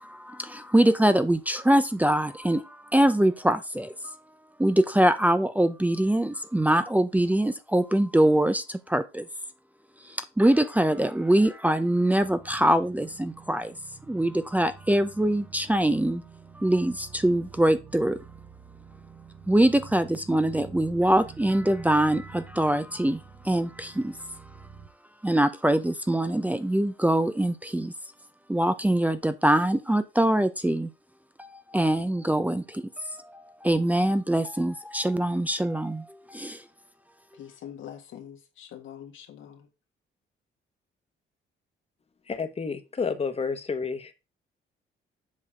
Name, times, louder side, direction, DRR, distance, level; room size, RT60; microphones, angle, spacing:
voice 1, 0.0-4.2 4.6-9.3 10.0-13.7 14.1-16.2 16.5-18.2 19.5-24.7 25.2-27.9 28.5-30.9 31.4-36.6, right 1 dB, 10° right, 0.7 m, -24 dB
sound 1, 12.2-24.9, right 6 dB, 35° right, 0.9 m, -48 dB
voice 2, 37.3-39.7, left 10 dB, 80° left, 1.7 m, -44 dB
voice 3, 42.3-44.1, left 5 dB, 30° left, 1.2 m, -30 dB
7.4 x 4.0 x 5.0 m
cardioid pair, 90°, 20 cm